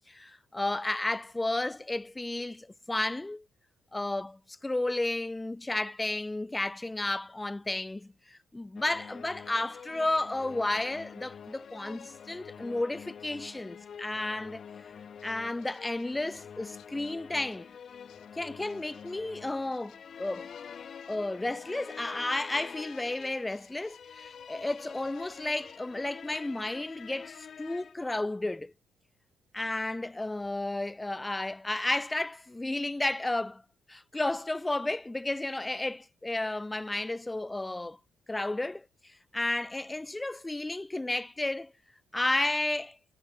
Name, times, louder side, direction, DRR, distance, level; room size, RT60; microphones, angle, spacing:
voice 1, 0.1-3.4 3.9-14.9 15.2-17.7 18.3-20.5 21.1-28.7 29.5-33.6 33.9-38.0 38.3-41.7 42.1-43.0, left 2 dB, 15° left, 1.5 m, -32 dB
sound 1, 8.8-27.9, left 7 dB, 50° left, 2.9 m, -47 dB
Writing, 14.6-27.8, left 13 dB, 85° left, 5.4 m, -64 dB
cardioid pair, 90°, 0 cm